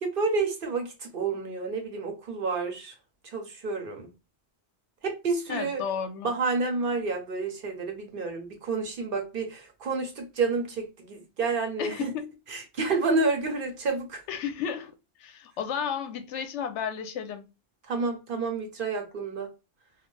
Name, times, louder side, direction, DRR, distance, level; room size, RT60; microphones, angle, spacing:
voice 1, 0.0-2.9 3.2-4.1 5.0-5.8 6.2-12.1 12.5-14.2 17.9-19.5, right 3 dB, 55° right, 0.9 m, -29 dB
voice 2, 5.5-6.3 11.8-12.3 14.3-14.9 15.2-17.5, left 7 dB, 90° left, 0.9 m, -33 dB
2.5 x 2.4 x 3.1 m
omnidirectional pair, 1.2 m